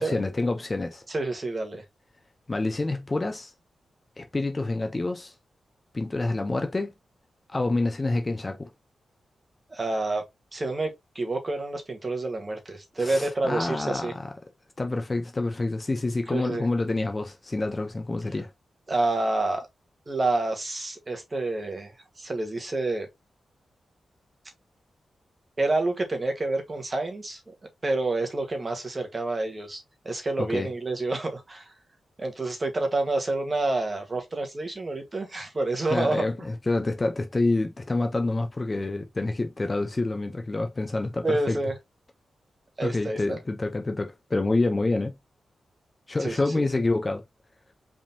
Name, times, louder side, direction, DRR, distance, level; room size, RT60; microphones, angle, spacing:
voice 1, 0.0-1.0 2.5-3.5 4.2-5.3 5.9-6.9 7.5-8.7 13.0-14.3 14.8-18.5 30.4-30.7 35.9-41.6 42.8-45.1 46.1-47.2, left 2 dB, 25° left, 0.6 m, -27 dB
voice 2, 1.1-1.8 9.7-10.2 10.5-14.1 16.3-16.7 18.9-19.7 20.1-23.1 25.6-27.4 27.8-31.7 32.2-36.2 41.2-41.7 42.8-43.4 46.2-46.4, right 2 dB, 25° right, 1.3 m, -28 dB
5.0 x 3.6 x 2.7 m
wide cardioid pair, 140°, 0 cm